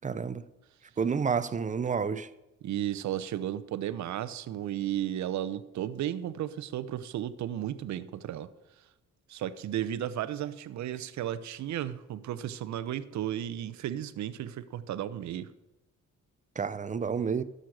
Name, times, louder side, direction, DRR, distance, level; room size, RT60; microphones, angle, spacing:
voice 1, 0.0-0.4 1.0-2.3 16.6-17.4, right 6 dB, 25° right, 0.6 m, -29 dB
voice 2, 2.6-8.5 9.3-15.5, right 11 dB, 65° right, 0.8 m, -34 dB
12.5 x 6.5 x 6.4 m
cardioid pair, 90°, 30 cm